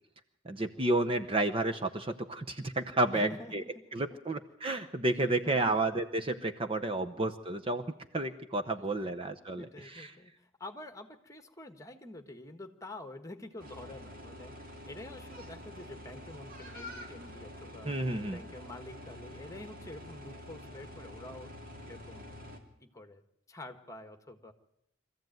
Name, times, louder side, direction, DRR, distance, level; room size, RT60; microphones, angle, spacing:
voice 1, 0.4-3.6 3.9-7.8 8.1-10.1 17.8-18.4, right 2 dB, 25° right, 7 dB, 0.8 m, -31 dB
voice 2, 3.1-3.8 4.1-4.2 5.2-5.8 8.8-9.1 9.6-10.3 10.6-14.5 14.8-17.9 18.2-21.5 21.9-22.4 22.8-23.2 23.5-24.5, left 2 dB, 15° left, 7 dB, 1.6 m, -47 dB
sound 1, 13.6-22.6, left 1 dB, 45° right, 3.0 m, -47 dB
24.0 x 15.0 x 9.2 m, 0.77 s
head